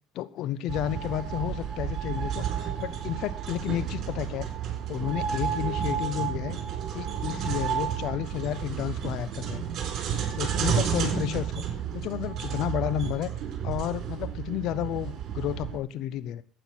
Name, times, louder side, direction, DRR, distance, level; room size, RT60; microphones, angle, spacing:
voice 1, 0.1-4.5 4.9-6.6 6.9-9.7 10.3-11.6 11.9-13.3 13.6-16.4, left 12 dB, 65° left, 16 dB, 1.0 m, -31 dB
sound 1, 0.7-15.8, right 8 dB, 55° right, 4.2 m, -31 dB
12.5 x 9.0 x 6.1 m, 0.38 s
supercardioid pair, 95°, 0 cm